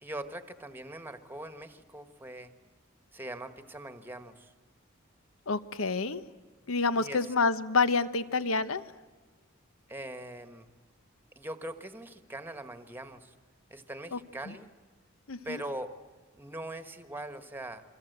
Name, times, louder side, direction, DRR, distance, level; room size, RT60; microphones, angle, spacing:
voice 1, 0.0-2.5 3.1-4.5 6.9-7.3 9.9-10.7 11.3-13.3 13.7-14.7 15.4-15.9 16.4-17.8, right 1 dB, 10° right, 9 dB, 1.4 m, -41 dB
voice 2, 5.5-6.2 6.7-8.8 14.1-14.2 14.5-14.6 15.3-15.6, left 4 dB, 75° left, 14 dB, 1.0 m, -28 dB
27.0 x 24.0 x 8.0 m, 1.3 s
head